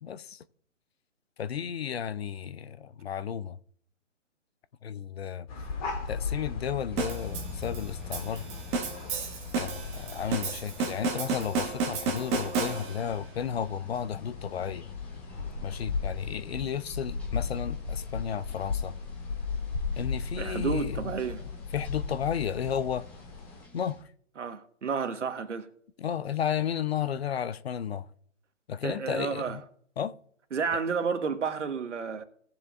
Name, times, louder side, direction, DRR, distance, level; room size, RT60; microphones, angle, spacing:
voice 1, 0.0-0.4 1.4-3.6 4.8-5.5 6.1-8.5 9.6-15.0 15.6-18.9 20.0-21.2 21.7-23.1 23.7-24.1 26.0-28.1 28.7-29.6 30.0-30.1, left 8 dB, 55° left, 0.7 m, -33 dB
sound 1, 5.5-23.6, left 5 dB, 30° left, 2.3 m, -37 dB
sound 2, 6.9-24.0, left 1 dB, 5° left, 1.4 m, -51 dB
sound 3, 7.0-13.2, right 4 dB, 15° right, 1.1 m, -32 dB
voice 2, 20.4-21.4 24.4-25.7 28.8-29.6 30.5-32.2, right 5 dB, 65° right, 1.4 m, -31 dB
18.0 x 7.3 x 2.5 m
figure-of-eight pair, 140°, 38 cm